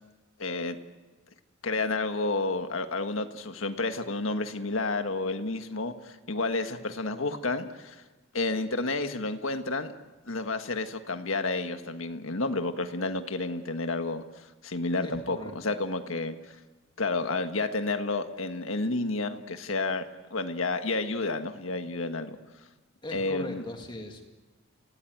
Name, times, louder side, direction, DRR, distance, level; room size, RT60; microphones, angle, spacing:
voice 1, 0.4-0.8 1.6-8.0 8.3-9.9 10.3-14.2 14.6-16.3 17.0-22.4 23.1-23.6, left 3 dB, 80° left, 7 dB, 1.6 m, -30 dB
voice 2, 15.0-15.5 23.0-24.2, left 1 dB, 25° left, 3 dB, 2.2 m, -40 dB
28.5 x 18.0 x 9.4 m, 1.2 s
head